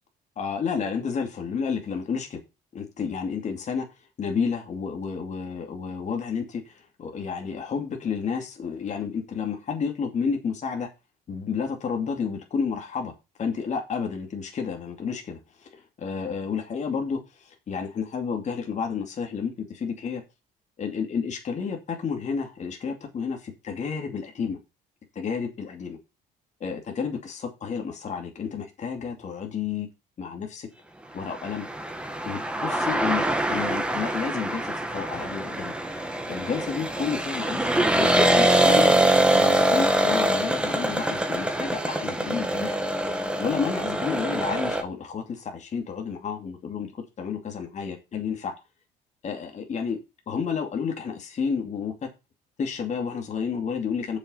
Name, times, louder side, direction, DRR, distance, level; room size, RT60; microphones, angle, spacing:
voice 1, 0.4-2.4 2.7-3.9 4.2-10.9 11.3-13.1 13.4-20.2 20.8-24.6 25.1-26.0 26.6-29.9 30.2-30.7 31.1-31.7 32.3-33.2 33.5-38.9 39.2-46.9 47.2-48.5 49.2-50.0 50.3-51.9 52.6-54.2, left 6 dB, 45° left, 2 dB, 2.6 m, -31 dB
sound 1, 31.4-44.8, right 1 dB, 5° right, 1.7 m, -24 dB
7.3 x 6.6 x 5.6 m, 0.25 s
cardioid pair, 110°, 17 cm